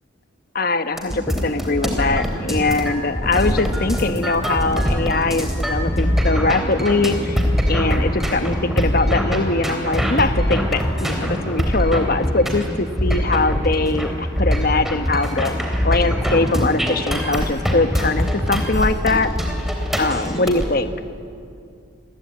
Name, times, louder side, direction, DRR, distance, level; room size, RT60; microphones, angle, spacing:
voice 1, 0.5-7.4 7.7-15.6 15.8-19.3 20.0-20.9, left 3 dB, 50° left, 10 dB, 1.2 m, -21 dB
sound 1, 1.0-20.7, equal, ahead, 3.5 m, -22 dB
30.0 x 22.5 x 8.8 m, 2.4 s
head